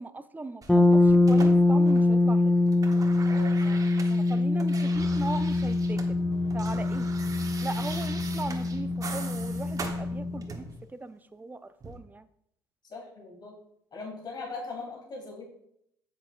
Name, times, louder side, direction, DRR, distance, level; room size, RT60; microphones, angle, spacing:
voice 1, 0.0-2.5 4.3-6.2 6.5-7.1 7.6-10.7 10.9-12.3, right 3 dB, 15° right, 13 dB, 0.5 m, -38 dB
sound 1, 0.6-2.3 2.6-6.1 6.4-10.8 11.8-12.0, right 4 dB, 30° right, 1.2 m, -42 dB
sound 2, 0.7-10.5, left 2 dB, 5° left, 0.9 m, -24 dB
voice 2, 3.3-3.8 4.1-4.7 12.9-13.5 13.9-15.4, left 3 dB, 40° left, -3 dB, 2.8 m, -41 dB
sound 3, 4.9-10.8, left 4 dB, 65° left, 1.3 m, -42 dB
7.9 x 7.6 x 2.5 m, 0.75 s
hypercardioid pair, 65°, 11 cm